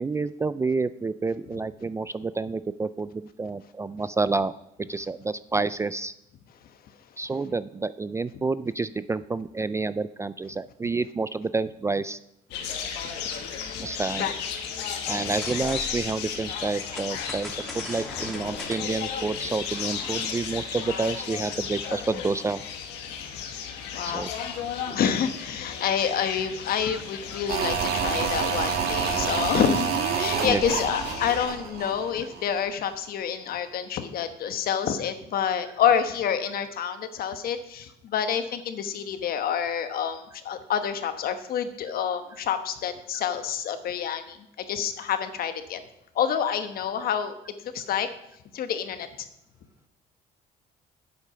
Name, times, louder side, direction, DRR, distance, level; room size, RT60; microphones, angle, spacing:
voice 1, 0.0-4.5 4.9-6.1 7.2-12.2 13.8-14.3 15.1-22.6 24.1-24.3 24.9-25.0 26.8-27.0 30.4-30.6, right 3 dB, 15° right, 15 dB, 0.3 m, -29 dB
sound 1, 12.5-31.5, left 7 dB, 90° left, 1.5 m, -34 dB
sound 2, 15.0-16.2 16.9-20.1, equal, ahead, 1.8 m, -41 dB
voice 2, 23.8-24.5 24.9-29.9 30.1-44.4 44.7-45.8 46.1-47.4 47.7-48.1 48.5-49.3, left 8 dB, 60° left, 9 dB, 1.2 m, -28 dB
sound 3, 27.5-32.7 32.9-33.0, right 7 dB, 70° right, 1.5 m, -28 dB
8.3 x 8.3 x 5.7 m, 0.81 s
cardioid pair, 110°, 17 cm